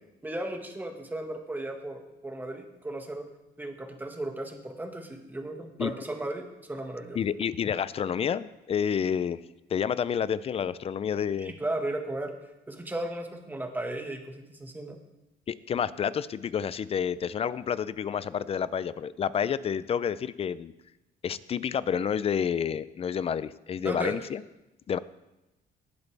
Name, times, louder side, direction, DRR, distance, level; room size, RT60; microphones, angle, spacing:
voice 1, 0.2-3.3 3.6-7.2 11.4-12.3 12.7-15.0 23.8-24.1, right 1 dB, 10° right, 4 dB, 1.6 m, -35 dB
voice 2, 7.1-9.4 9.7-11.5 15.5-20.7 21.2-24.4 24.9-25.0, left 8 dB, 35° left, 17 dB, 0.5 m, -29 dB
18.0 x 8.2 x 3.4 m, 0.98 s
cardioid pair, 110°, 17 cm